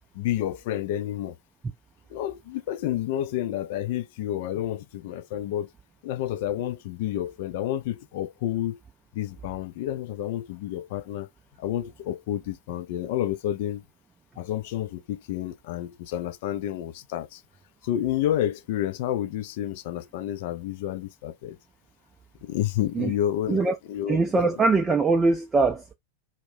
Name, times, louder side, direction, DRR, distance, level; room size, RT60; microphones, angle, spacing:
voice 1, 0.2-1.3 2.1-5.7 6.0-8.8 9.1-11.3 11.6-13.8 14.4-17.4 17.8-21.6 22.5-24.3, left 12 dB, 50° left, 0.4 m, -30 dB
voice 2, 24.1-25.9, right 3 dB, 15° right, 0.4 m, -22 dB
2.4 x 2.1 x 3.5 m
figure-of-eight pair, 90°, 0 cm